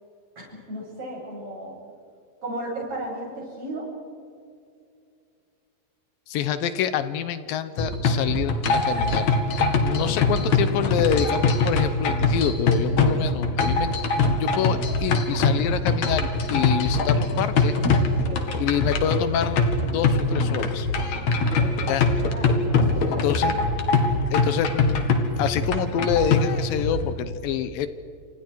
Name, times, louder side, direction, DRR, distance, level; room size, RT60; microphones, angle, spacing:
voice 1, 0.4-1.8 2.4-3.9 10.2-10.5 18.2-18.5 21.3-23.7, right 1 dB, 40° right, -4 dB, 9.1 m, -35 dB
voice 2, 6.3-17.8 18.6-20.9 21.9-22.1 23.1-23.6 24.3-25.0 25.4-27.9, left 9 dB, 75° left, 12 dB, 2.7 m, -27 dB
sound 1, 7.8-27.1, left 3 dB, 55° left, 3.0 m, -23 dB
29.5 x 27.0 x 4.7 m, 2.4 s
omnidirectional pair, 4.2 m